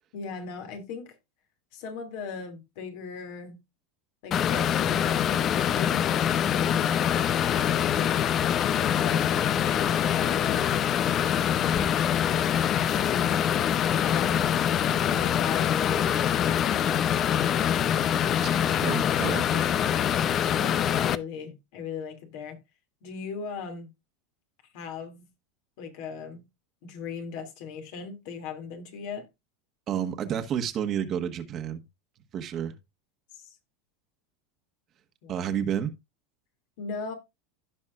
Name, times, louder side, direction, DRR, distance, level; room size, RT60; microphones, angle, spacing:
voice 1, 0.1-1.2 1.7-3.6 4.2-8.3 8.9-11.9 13.1-13.3 14.0-14.6 15.0-17.2 20.5-22.6 23.0-23.9 24.7-25.3 25.8-26.4 26.8-29.2 33.3-33.6 35.2-35.3 36.8-37.1, left 6 dB, 65° left, 2.6 m, -38 dB
sound 1, 4.3-21.2, left 9 dB, 40° left, 0.6 m, -24 dB
voice 2, 18.3-19.6 29.9-31.8 32.3-32.7 35.3-35.9, right 9 dB, 40° right, 1.4 m, -31 dB
16.0 x 5.3 x 2.5 m
hypercardioid pair, 105°, 0 cm